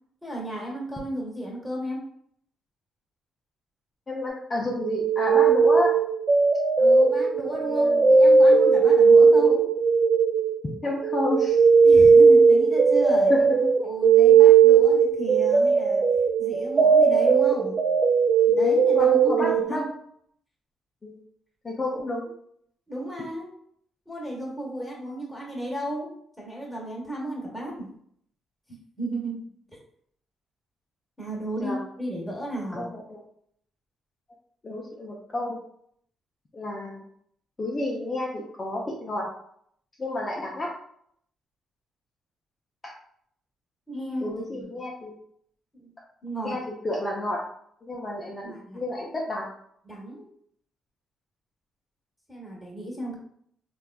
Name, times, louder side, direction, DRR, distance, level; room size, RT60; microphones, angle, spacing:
voice 1, 0.2-2.0 6.8-9.6 11.8-13.5 13.8-16.0 16.4-17.8 18.4-19.9 22.9-23.5 24.1-26.1 26.4-27.9 28.7-29.4 31.2-32.9 43.9-44.7 45.8-45.9 46.2-46.6 48.4-48.8 49.8-50.2 52.3-53.2, right 1 dB, ahead, -4 dB, 1.1 m, -34 dB
voice 2, 4.1-6.0 7.6-8.1 9.4-9.6 10.8-11.6 13.3-13.7 18.9-19.9 21.0-21.2 21.6-22.2 31.6-31.8 32.7-33.2 34.6-35.6 36.5-37.1 37.6-39.3 40.0-40.7 42.8-42.9 44.2-45.1 46.4-47.4 47.8-49.5, left 1 dB, 30° left, -3 dB, 0.5 m, -30 dB
sound 1, 4.8-10.8 11.0-19.6, right 5 dB, 40° right, 0.4 m, -18 dB
3.3 x 2.4 x 2.2 m, 0.67 s
cardioid pair, 90°, 0 cm